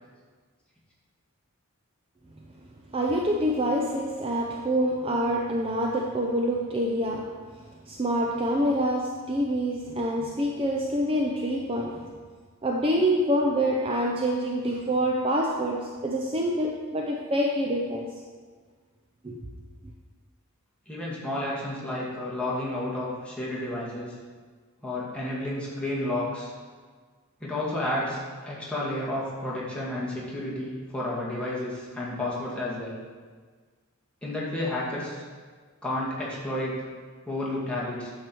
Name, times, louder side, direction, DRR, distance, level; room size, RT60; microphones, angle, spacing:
voice 1, 2.9-7.4 7.8-12.1 12.6-18.1 19.2-19.4, equal, 25° right, -1 dB, 0.6 m, -26 dB
voice 2, 20.9-24.1 24.8-26.5 27.4-33.0 34.2-35.2 35.8-36.8 37.3-38.1, left 1 dB, 5° left, -7 dB, 2.0 m, -31 dB
9.4 x 6.6 x 4.6 m, 1.5 s
head